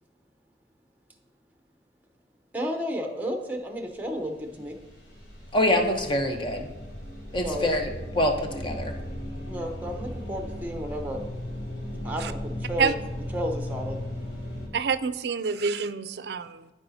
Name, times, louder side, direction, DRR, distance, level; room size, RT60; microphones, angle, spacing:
voice 1, 2.5-4.8 7.4-7.7 9.5-11.3 12.0-12.9 13.3-14.0, equal, 10° right, 3 dB, 0.8 m, -32 dB
sound 1, 3.6-3.7 4.0-14.7, left 1 dB, 80° left, 2.6 m, -36 dB
voice 2, 5.5-6.7 7.3-7.9 8.1-8.9, left 1 dB, 30° left, 3 dB, 0.8 m, -25 dB
voice 3, 14.7-16.7, right 5 dB, 65° right, 12 dB, 0.4 m, -27 dB
14.0 x 4.8 x 2.8 m, 1.1 s
head